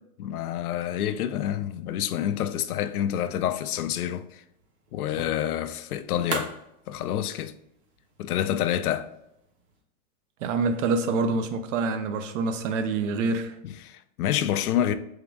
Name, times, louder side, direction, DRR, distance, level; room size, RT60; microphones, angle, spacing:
voice 1, 0.2-4.4 4.9-6.5 6.9-7.5 8.2-9.1 13.6-14.9, left 11 dB, 75° left, 0.5 m, -28 dB
sound 1, 3.9-9.8, right 3 dB, 30° right, 0.8 m, -42 dB
voice 2, 10.4-13.5, right 3 dB, 55° right, 0.6 m, -26 dB
3.6 x 3.0 x 3.5 m
hypercardioid pair, 125°, 45 cm